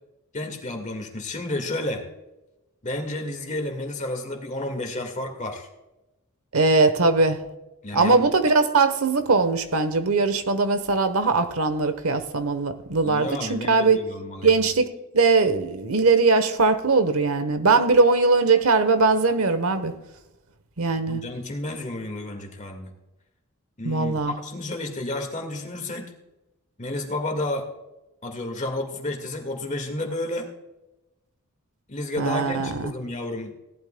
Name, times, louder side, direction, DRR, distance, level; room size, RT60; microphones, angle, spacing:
voice 1, 0.3-2.0 2.8-5.7 7.8-8.3 13.0-14.6 21.1-22.9 23.8-26.1 26.8-27.7 28.2-30.5 31.9-33.5, left 1 dB, 35° left, 4 dB, 1.8 m, -31 dB
voice 2, 6.5-7.4 7.9-14.0 14.4-14.9 15.1-19.9 20.8-21.2 23.8-24.3 32.2-32.9, right 3 dB, 70° right, 10 dB, 1.0 m, -20 dB
17.5 x 12.0 x 2.2 m, 1.0 s
head